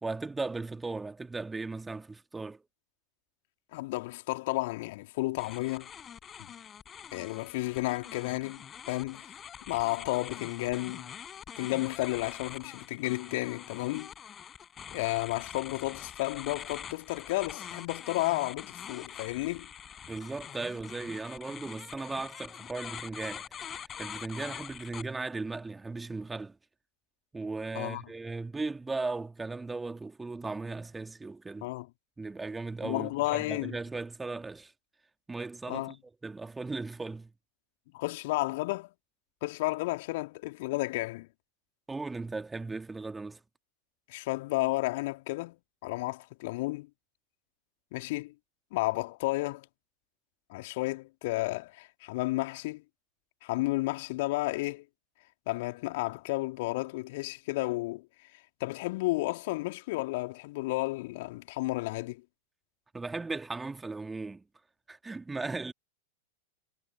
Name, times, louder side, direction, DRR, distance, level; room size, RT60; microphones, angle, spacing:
voice 1, 0.0-2.6 20.1-26.5 27.3-31.7 32.2-34.7 35.3-36.0 36.2-37.3 41.9-43.4 62.9-64.4 64.9-65.7, right 3 dB, 10° right, 2.5 m, -37 dB
voice 2, 3.7-5.9 6.4-6.5 7.1-9.3 9.7-11.1 11.6-14.1 14.9-19.7 27.7-28.0 31.6-31.9 32.8-33.8 35.7-35.9 37.9-38.9 39.4-41.3 44.1-45.6 45.8-46.9 47.9-48.3 48.7-49.6 50.5-52.8 53.4-54.8 55.5-58.0 58.6-62.2, left 21 dB, 50° left, 3.1 m, -32 dB
sound 1, 5.4-25.0, left 8 dB, 25° left, 7.1 m, -44 dB
figure-of-eight pair, 90°, 0 cm